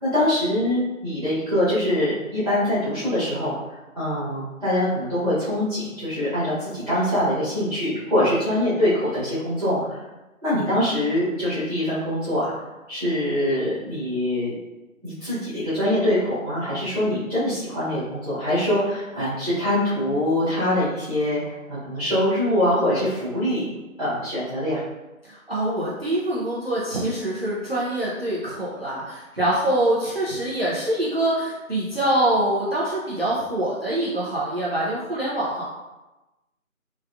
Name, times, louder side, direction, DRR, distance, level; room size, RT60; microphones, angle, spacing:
voice 1, 0.0-10.0 10.4-12.5 12.9-14.5 15.0-23.6 24.0-24.8, left 1 dB, 25° right, -14 dB, 1.4 m, -24 dB
voice 2, 25.2-35.6, right 1 dB, 45° right, -7 dB, 0.6 m, -24 dB
3.5 x 3.3 x 2.3 m, 1.1 s
figure-of-eight pair, 165°, 42 cm